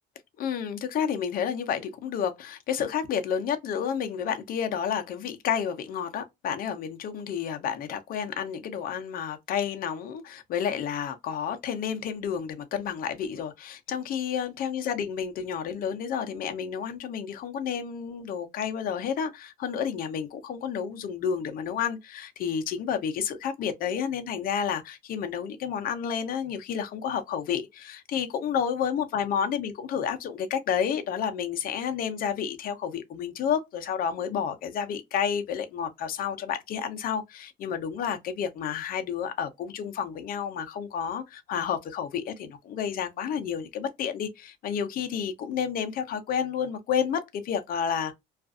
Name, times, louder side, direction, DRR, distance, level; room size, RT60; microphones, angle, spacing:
voice 1, 0.4-48.1, left 8 dB, 45° left, 0.6 m, -30 dB
2.5 x 2.4 x 2.4 m
cardioid pair, 135°, 20 cm